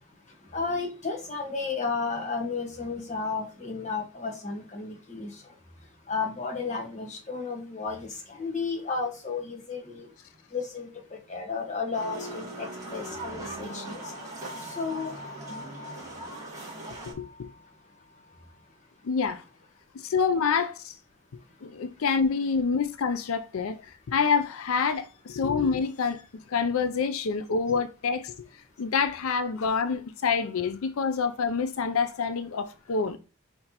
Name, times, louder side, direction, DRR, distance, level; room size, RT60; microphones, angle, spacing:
voice 1, 0.5-5.4 6.1-10.1 10.5-14.0 14.6-15.2, left 4 dB, 35° left, 1.3 m, -33 dB
sound 1, 11.9-17.1, right 2 dB, 15° right, 2.5 m, -40 dB
sound 2, 13.6-18.7, left 4 dB, 60° right, 2.0 m, -47 dB
voice 2, 17.1-17.5 19.0-19.4 20.0-21.0 21.6-28.3 28.8-33.2, left 5 dB, 70° left, 0.4 m, -27 dB
5.6 x 3.3 x 2.9 m
head